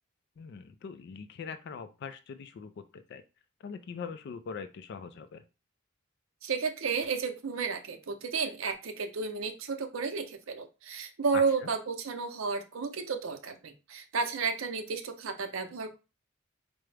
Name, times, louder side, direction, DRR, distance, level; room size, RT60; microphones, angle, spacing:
voice 1, 0.4-3.2 3.6-5.4 11.3-11.7, left 6 dB, 55° left, 10 dB, 0.3 m, -42 dB
voice 2, 6.4-16.0, right 5 dB, 70° right, 6 dB, 0.6 m, -32 dB
4.6 x 2.0 x 3.2 m, 0.29 s
head